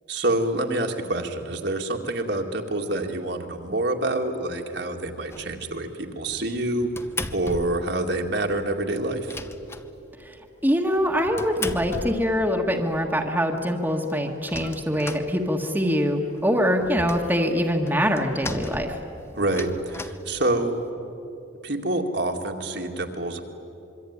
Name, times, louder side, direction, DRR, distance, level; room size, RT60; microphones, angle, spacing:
voice 1, 0.1-6.9 7.3-9.4 19.3-20.7 21.6-23.4, right 2 dB, 60° right, 2 dB, 2.3 m, -27 dB
sound 1, 5.3-5.7 6.3-8.0 8.3-8.4 8.6-8.7 9.0-10.3 10.9-12.7 13.2-13.3 13.6-13.7 13.9-15.9 16.3-20.9, left 2 dB, 15° left, 0.9 m, -37 dB
voice 2, 10.6-19.0, equal, 10° right, 2 dB, 1.6 m, -24 dB
26.0 x 24.0 x 9.7 m, 2.9 s
head